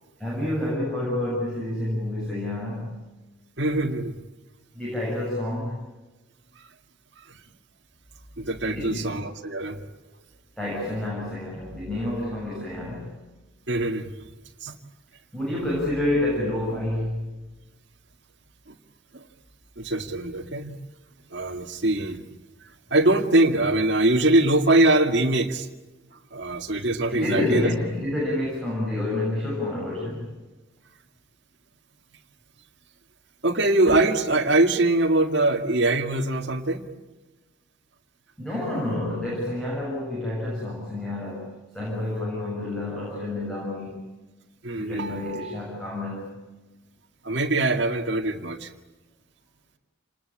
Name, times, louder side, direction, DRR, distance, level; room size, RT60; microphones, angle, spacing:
voice 1, 0.2-3.0 4.7-5.8 8.7-9.1 10.6-13.2 15.3-17.4 27.1-30.3 38.4-44.0 44.7-46.4, left 1 dB, 5° left, -4 dB, 7.2 m, -29 dB
voice 2, 3.6-4.1 7.2-7.4 8.4-9.8 13.7-14.1 14.6-14.7 18.7-18.8 19.1-19.2 19.8-20.8 21.3-22.2 22.9-25.7 26.3-27.7 33.4-36.8 44.6-45.9 47.2-48.7, right 2 dB, 60° right, 2 dB, 2.0 m, -23 dB
28.5 x 20.0 x 8.8 m, 1.2 s
head